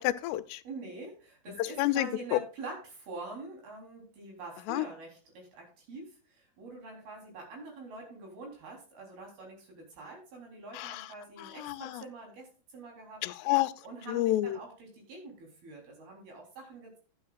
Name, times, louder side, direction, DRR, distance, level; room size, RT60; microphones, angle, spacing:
voice 1, 0.0-0.6 1.6-2.4 4.7-4.9 10.7-11.1 11.4-12.0 13.2-13.7 14.1-14.6, left 16 dB, 85° left, 10 dB, 2.7 m, -29 dB
voice 2, 0.6-13.2 13.8-17.0, right 2 dB, 65° right, 0 dB, 5.4 m, -45 dB
12.5 x 9.6 x 2.4 m, 0.37 s
omnidirectional pair, 4.8 m